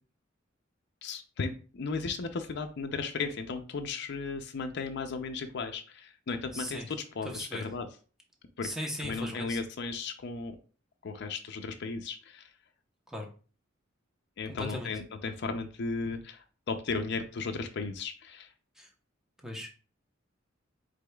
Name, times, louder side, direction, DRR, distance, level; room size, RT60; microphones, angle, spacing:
voice 1, 1.0-7.9 8.6-8.7 9.0-10.6 11.0-12.5 14.4-18.5, left 4 dB, 60° left, 5 dB, 0.5 m, -35 dB
voice 2, 6.5-6.9 7.3-7.6 8.6-9.6 13.1-13.3 14.5-14.9 18.8-18.9 19.4-19.8, left 1 dB, 5° right, 1 dB, 0.8 m, -38 dB
5.0 x 3.8 x 2.3 m, 0.38 s
head